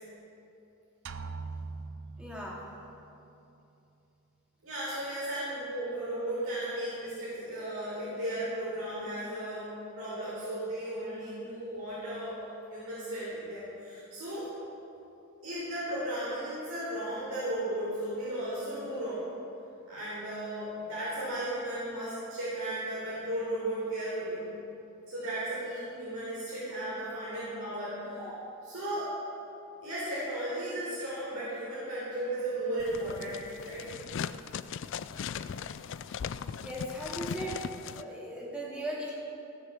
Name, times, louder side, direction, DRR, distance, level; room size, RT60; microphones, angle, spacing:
sound 1, 1.1-2.9, right 4 dB, 60° right, 0.6 m, -41 dB
voice 1, 2.2-2.6 28.2-28.4 36.6-37.6 37.9-39.1, right 1 dB, 5° right, -5 dB, 2.5 m, -38 dB
voice 2, 4.6-12.4 12.7-14.5 15.4-19.3 19.9-24.5 25.1-28.2 28.6-29.1 29.8-33.8, right 1 dB, 85° right, -9 dB, 3.8 m, -35 dB
sound 2, 32.8-38.0, left 7 dB, 60° left, 0.4 m, -38 dB
16.0 x 7.0 x 7.5 m, 2.8 s
head